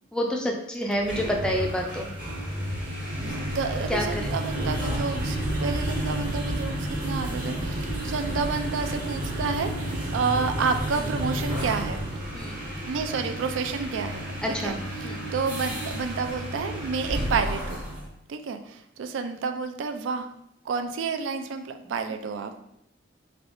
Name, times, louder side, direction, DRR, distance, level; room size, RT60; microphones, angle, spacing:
voice 1, 0.1-2.1 3.9-4.3 12.3-12.6 14.4-14.8 15.0-15.2, equal, 5° left, 0 dB, 0.3 m, -28 dB
sound 1, 0.9-18.1, right 1 dB, 45° right, 0.9 m, -31 dB
voice 2, 3.2-12.0 12.9-17.8 18.3-20.3 20.7-22.5, right 5 dB, 85° right, 7 dB, 0.3 m, -30 dB
3.7 x 3.3 x 2.5 m, 0.77 s
head